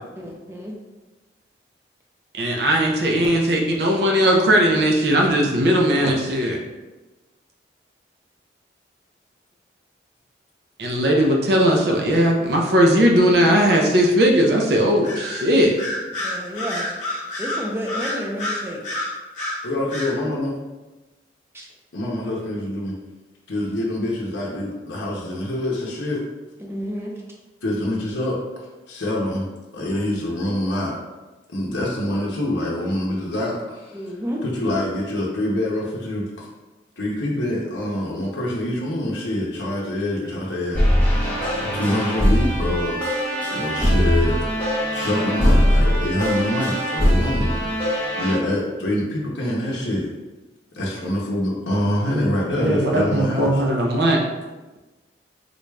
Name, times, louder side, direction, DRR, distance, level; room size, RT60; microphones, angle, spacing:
voice 1, 0.1-0.8 16.2-16.9 17.4-18.9 21.5-21.7 26.6-27.1 33.9-34.4, equal, 15° right, -1 dB, 0.5 m, -30 dB
voice 2, 2.3-6.6 10.8-15.7 52.1-52.2 52.6-54.2, equal, 60° right, 0 dB, 0.5 m, -18 dB
Bird vocalization bird call bird song, 15.0-15.4 15.8-19.6 19.9-20.1, left 1 dB, 40° left, 0.9 m, -28 dB
voice 3, 19.6-20.6 21.9-22.9 23.5-26.2 27.6-28.4 28.9-29.5 29.7-31.0 31.5-34.0 34.4-36.5 37.0-40.8 41.7-43.0 43.5-44.4 44.7-47.6 48.1-50.1 50.7-53.6, left 1 dB, 80° left, -3 dB, 0.6 m, -25 dB
sound 1, 40.7-48.3, equal, 10° left, 0.8 m, -21 dB
3.9 x 2.3 x 3.2 m, 1.2 s
head